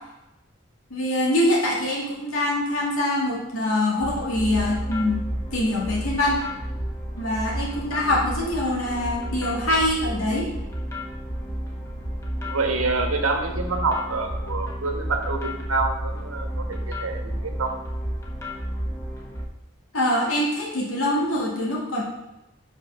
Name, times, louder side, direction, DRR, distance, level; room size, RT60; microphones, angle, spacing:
voice 1, 0.9-5.2 5.5-6.4 7.2-10.5 19.9-22.0, left 1 dB, 85° left, -4 dB, 2.3 m, -24 dB
sound 1, 4.0-19.5, equal, 15° left, 1.2 m, -31 dB
voice 2, 12.5-17.7, right 3 dB, 85° right, 4 dB, 1.3 m, -27 dB
6.1 x 5.8 x 6.4 m, 0.93 s
head